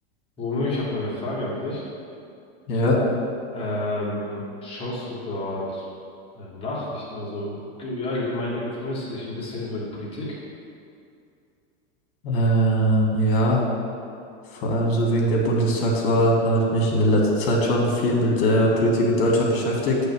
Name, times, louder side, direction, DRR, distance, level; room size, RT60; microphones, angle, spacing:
voice 1, 0.4-1.8 3.5-5.9 6.4-10.4, left 2 dB, 15° left, -8 dB, 1.7 m, -30 dB
voice 2, 2.7-3.0 12.2-13.6 14.5-20.0, equal, 50° left, -1 dB, 1.7 m, -20 dB
8.2 x 3.5 x 6.1 m, 2.5 s
supercardioid pair, 150°, 32 cm